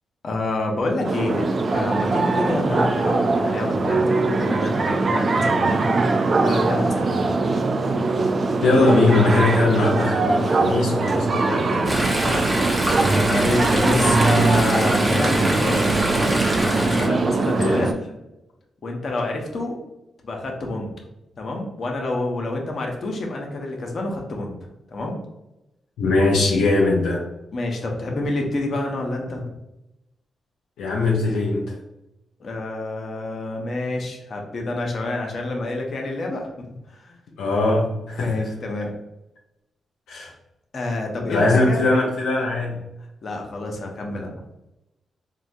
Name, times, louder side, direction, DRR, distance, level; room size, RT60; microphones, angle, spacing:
voice 1, 0.2-5.9 6.4-7.4 13.1-18.1 18.8-19.8 20.2-20.9 21.4-24.5 24.9-25.2 27.5-29.5 32.4-37.1 38.2-38.9 40.7-41.8 43.2-44.4, left 2 dB, 60° left, 1 dB, 0.7 m, -28 dB
sound 1, 1.0-17.9, right 3 dB, 50° right, 0.3 m, -21 dB
voice 2, 8.6-12.4 17.5-17.8 26.0-27.2 30.8-31.8 37.4-38.4 40.1-40.3 41.3-42.8, left 2 dB, 90° left, -3 dB, 0.5 m, -21 dB
Chatter / Stream, 11.8-17.1, right 1 dB, 30° right, 0.9 m, -24 dB
3.7 x 2.2 x 2.6 m, 0.91 s
supercardioid pair, 50°, 0 cm